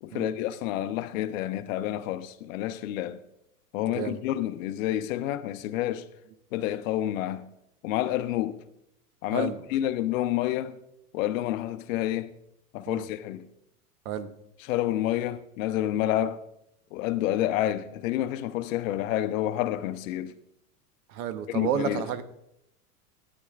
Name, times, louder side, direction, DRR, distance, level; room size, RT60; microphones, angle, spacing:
voice 1, 0.0-3.2 3.7-6.1 6.5-7.4 7.8-8.6 9.2-10.8 11.1-12.3 12.7-13.4 14.6-16.5 16.9-20.3 21.5-22.1, left 13 dB, 60° left, 0.8 m, -29 dB
voice 2, 3.9-4.2 9.3-9.6 12.9-13.1 14.0-14.3 15.9-16.1 21.1-22.2, right 9 dB, 70° right, 1.1 m, -31 dB
14.0 x 9.6 x 2.4 m
hypercardioid pair, 115°, 46 cm